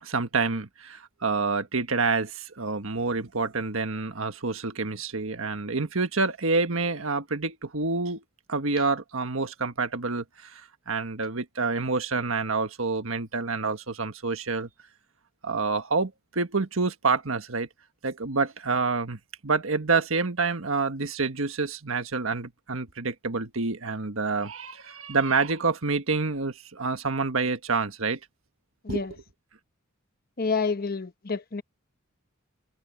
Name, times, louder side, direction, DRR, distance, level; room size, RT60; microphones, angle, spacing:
voice 1, 0.0-8.2 8.5-14.7 15.4-17.7 18.0-28.2 28.9-29.0, right 4 dB, 80° right, 1.6 m, -28 dB
voice 2, 30.4-31.6, left 4 dB, 45° left, 0.9 m, -28 dB
head